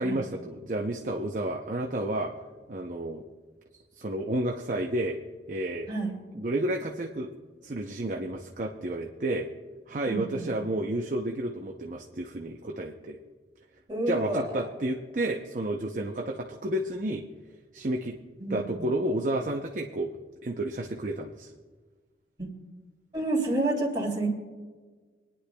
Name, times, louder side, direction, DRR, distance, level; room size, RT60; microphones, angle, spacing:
voice 1, 0.0-2.3 2.7-3.2 4.0-5.2 5.5-5.9 6.4-7.3 7.6-9.5 9.9-13.2 14.1-17.2 17.7-18.2 18.5-20.1 20.4-21.5, right 1 dB, 45° right, 1 dB, 0.6 m, -31 dB
voice 2, 10.1-10.5 13.9-14.7 18.4-18.8 22.4-22.5 23.1-24.3, right 2 dB, 25° right, -1 dB, 2.5 m, -29 dB
25.0 x 10.0 x 2.3 m, 1.4 s
head